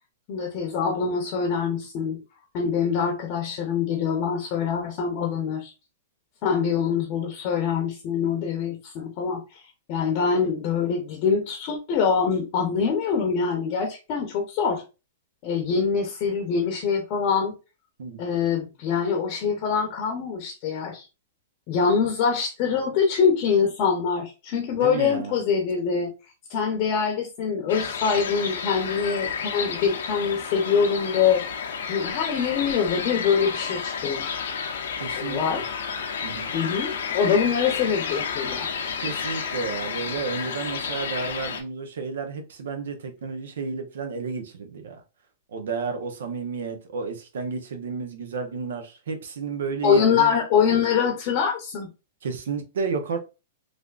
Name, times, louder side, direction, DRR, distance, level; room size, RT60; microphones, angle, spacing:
voice 1, 0.3-2.2 2.5-5.7 6.4-9.6 9.9-14.8 15.4-17.5 18.2-21.1 21.7-26.1 26.5-31.4 31.9-34.4 35.1-35.7 36.5-38.7 49.8-51.9, left 6 dB, 40° left, 0.7 m, -24 dB
voice 2, 24.7-25.3 35.0-35.6 36.2-36.5 39.0-45.0 45.5-50.3 52.2-53.2, right 5 dB, 80° right, 0.7 m, -32 dB
sound 1, 27.7-41.6, left 6 dB, 80° left, 0.6 m, -31 dB
3.3 x 2.5 x 2.4 m
hypercardioid pair, 150°, 0 cm